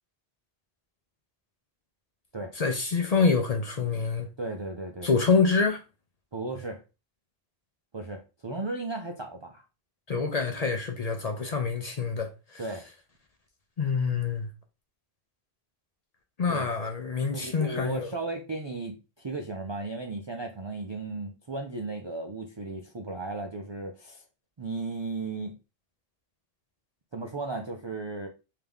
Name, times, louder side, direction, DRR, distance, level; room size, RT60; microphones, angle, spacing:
voice 1, 2.6-4.3 5.0-5.8 10.1-12.6 13.8-14.5 16.4-18.1, left 5 dB, 45° left, 0.6 m, -26 dB
voice 2, 4.4-5.1 6.3-6.8 7.9-9.6 12.6-12.9 16.5-16.7 17.3-24.2 24.6-25.5 27.1-28.3, right 3 dB, 45° right, 0.3 m, -35 dB
3.5 x 2.8 x 3.4 m
omnidirectional pair, 1.1 m